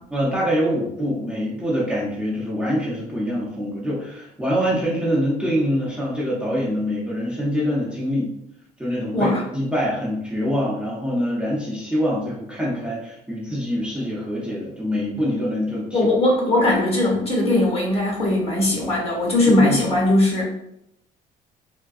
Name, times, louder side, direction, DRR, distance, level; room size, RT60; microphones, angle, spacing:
voice 1, 0.1-8.3 8.8-16.1 19.5-19.8, equal, 5° right, -7 dB, 0.7 m, -25 dB
voice 2, 15.9-20.4, left 1 dB, 35° left, -2 dB, 1.2 m, -19 dB
3.6 x 2.2 x 2.4 m, 0.77 s
cardioid pair, 110°, 17 cm